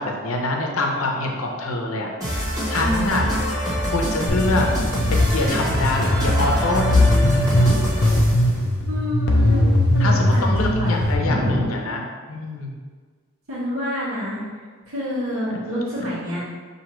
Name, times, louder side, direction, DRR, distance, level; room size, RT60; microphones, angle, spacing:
voice 1, 0.0-3.3 3.9-4.7 5.1-7.4 10.0-12.0 12.3-12.7 15.5-15.6, left 2 dB, 85° left, 1 dB, 0.7 m, -25 dB
sound 1, 2.2-8.5, equal, 15° right, 1.0 m, -25 dB
voice 2, 2.7-3.3 8.9-9.6 9.9-10.9 11.2-11.7 13.5-14.4 14.9-16.4, equal, 80° right, -10 dB, 1.2 m, -27 dB
sound 2, 4.3-11.1, left 1 dB, 50° left, 0.5 m, -19 dB
5.9 x 2.7 x 3.0 m, 1.5 s
head